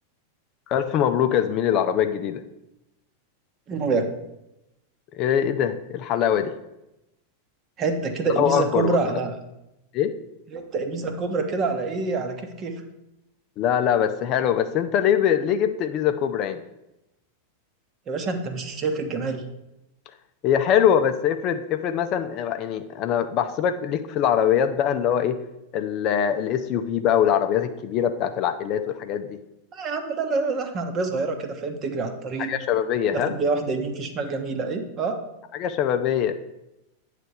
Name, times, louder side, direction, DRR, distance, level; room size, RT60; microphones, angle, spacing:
voice 1, 0.7-2.4 5.1-6.5 8.4-9.2 9.9-10.1 13.6-16.6 20.4-25.4 25.7-29.4 32.5-33.3 35.6-36.4, left 9 dB, 40° left, 8 dB, 0.5 m, -23 dB
voice 2, 3.7-4.1 7.8-9.4 10.5-12.8 18.1-19.4 29.7-32.5 33.1-35.2, right 3 dB, 30° right, 7 dB, 1.0 m, -26 dB
8.9 x 3.3 x 6.6 m, 0.91 s
figure-of-eight pair, 90°, 0 cm